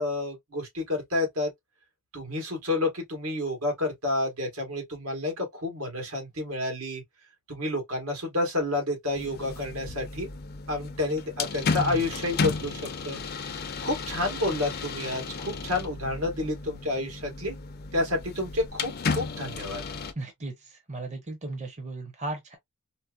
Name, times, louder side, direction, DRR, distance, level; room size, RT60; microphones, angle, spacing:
voice 1, 0.0-1.5 2.1-7.0 7.5-10.3 10.7-13.2 13.8-17.6 17.9-19.8, left 2 dB, 85° right, 1.7 m, -30 dB
sound 1, 9.1-20.1, left 4 dB, 45° left, 0.5 m, -34 dB
voice 2, 11.7-12.0 20.2-22.6, right 2 dB, 30° right, 0.8 m, -35 dB
4.3 x 2.0 x 2.3 m
head